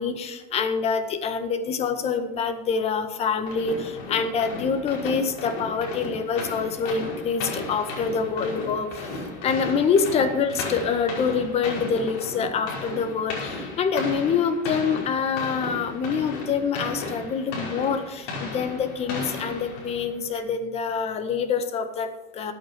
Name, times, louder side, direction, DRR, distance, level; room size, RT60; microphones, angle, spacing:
voice 1, 0.0-8.9 9.4-22.5, left 6 dB, 35° left, 9 dB, 1.6 m, -26 dB
sound 1, 3.5-20.2, left 3 dB, 65° left, 5.5 m, -35 dB
14.5 x 8.8 x 6.1 m, 0.98 s
supercardioid pair, 135°, 19 cm